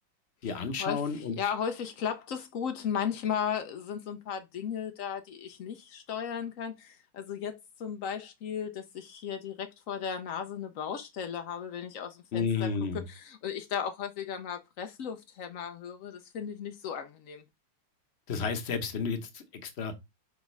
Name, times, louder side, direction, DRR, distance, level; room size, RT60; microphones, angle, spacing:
voice 1, 0.4-1.5 12.3-13.0 18.3-20.0, left 5 dB, 45° left, 0.9 m, -32 dB
voice 2, 1.4-12.7 13.1-17.4, left 8 dB, 85° left, 0.7 m, -35 dB
5.2 x 3.5 x 5.3 m
omnidirectional pair, 2.3 m